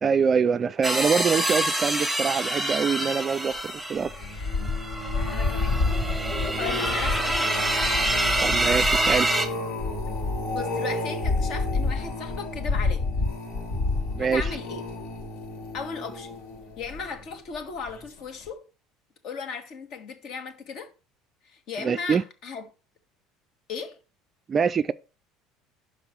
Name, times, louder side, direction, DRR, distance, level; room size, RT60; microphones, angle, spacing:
voice 1, 0.0-3.6 3.9-4.1 8.4-9.3 14.1-14.4 21.8-22.2 24.5-24.9, right 6 dB, 25° right, 0.3 m, -24 dB
sound 1, 0.8-9.5, right 1 dB, ahead, 1.2 m, -26 dB
sound 2, 4.0-17.3 17.9-18.2 18.5-18.6, left 3 dB, 75° left, 3.6 m, -29 dB
voice 2, 5.2-5.8 6.4-7.8 10.5-13.1 14.2-14.9 15.7-16.4 16.8-18.7 19.2-20.9 21.4-22.7 23.7-24.0, left 5 dB, 50° left, 1.6 m, -36 dB
5.9 x 5.0 x 6.7 m
cardioid pair, 140°, 0 cm